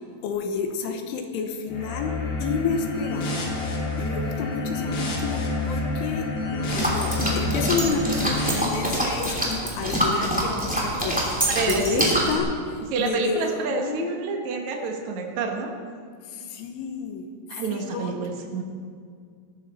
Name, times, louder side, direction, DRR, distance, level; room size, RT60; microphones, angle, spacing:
voice 1, 0.2-2.1 2.4-3.6 4.0-6.2 6.7-12.5 13.0-13.4 13.7-14.1 16.5-17.3 17.7-18.2, left 5 dB, 80° left, 5 dB, 3.6 m, -30 dB
sound 1, 1.7-8.5, left 2 dB, 55° left, 3.7 m, -28 dB
sound 2, 6.6-12.4, right 1 dB, 5° right, 1.0 m, -25 dB
voice 2, 11.5-12.1 12.9-15.7 17.5-18.6, right 4 dB, 85° right, 1 dB, 1.6 m, -28 dB
19.0 x 13.0 x 4.3 m, 2.1 s
omnidirectional pair, 5.7 m